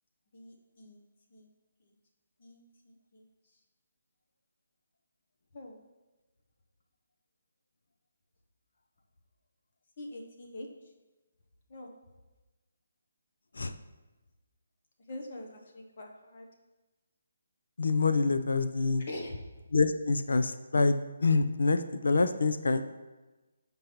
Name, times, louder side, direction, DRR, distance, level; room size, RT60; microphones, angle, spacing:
voice 1, 0.3-1.0 1.3-1.5 2.4-3.2 5.5-5.8 10.0-10.7 11.7-11.9 15.1-16.5 19.1-19.4, left 1 dB, 30° left, 1 dB, 0.7 m, -44 dB
voice 2, 17.8-19.0 19.7-22.9, left 3 dB, 75° left, 10 dB, 0.4 m, -26 dB
7.8 x 5.3 x 2.9 m, 1.2 s
hypercardioid pair, 180°, 0 cm